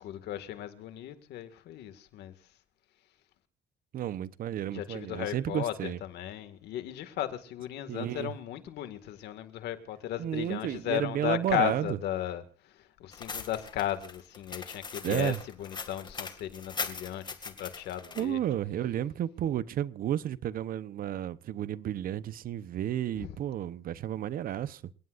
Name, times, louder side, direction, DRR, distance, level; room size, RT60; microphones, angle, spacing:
voice 1, 0.0-2.3 4.7-15.3 15.6-18.4 23.2-23.4, left 12 dB, 75° left, 2.1 m, -35 dB
voice 2, 3.9-6.0 7.9-8.3 10.2-12.0 15.0-15.4 18.2-24.8, right 11 dB, 60° right, 0.9 m, -32 dB
sound 1, 13.1-18.2, left 4 dB, 25° left, 2.2 m, -40 dB
28.5 x 18.0 x 2.6 m
cardioid pair, 110°, 17 cm